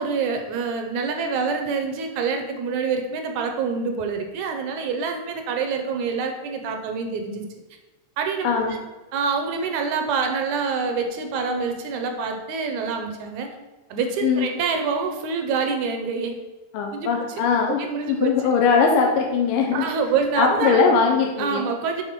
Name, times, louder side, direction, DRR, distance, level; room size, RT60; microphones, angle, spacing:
voice 1, 0.0-7.5 8.2-8.8 9.1-13.5 13.9-16.4 16.9-17.1 17.7-18.3 19.7-20.9 21.4-22.0, right 5 dB, 75° right, 4 dB, 1.9 m, -26 dB
voice 2, 8.4-8.8 14.2-14.5 16.7-17.8 18.1-19.9 20.4-21.6, left 5 dB, 80° left, 1 dB, 2.4 m, -20 dB
7.7 x 3.8 x 5.9 m, 1.1 s
omnidirectional pair, 3.9 m